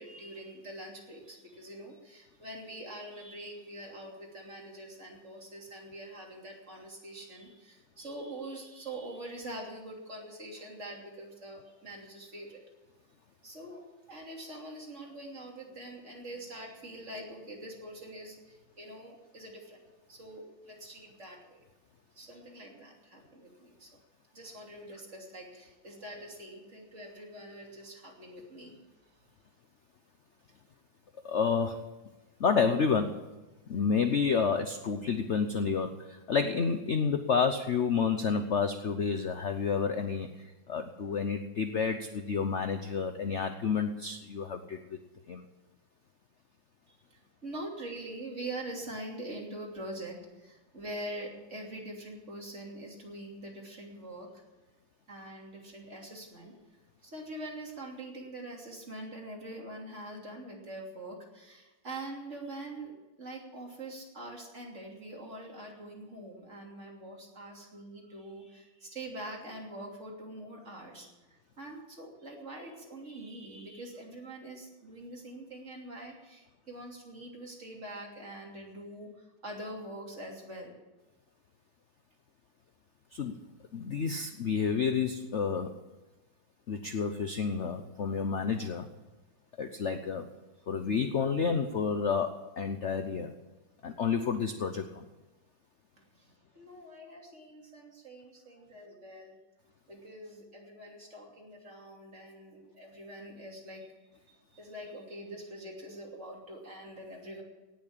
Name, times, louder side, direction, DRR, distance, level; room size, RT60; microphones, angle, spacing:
voice 1, 0.0-12.6 13.4-19.8 20.1-21.6 22.1-24.0 24.3-28.8 46.9-54.4 55.1-56.5 57.0-62.9 63.2-80.8 96.1-99.4 99.9-103.9 104.3-107.4, right 1 dB, 35° right, -1 dB, 3.2 m, -44 dB
voice 2, 31.2-31.9 32.4-33.2 33.7-45.0 45.3-45.4 83.1-83.4 83.7-85.7 86.7-88.9 89.6-90.3 90.7-93.3 93.8-95.1, left 5 dB, 70° left, 8 dB, 0.6 m, -30 dB
18.0 x 7.5 x 8.7 m, 1.1 s
omnidirectional pair, 2.3 m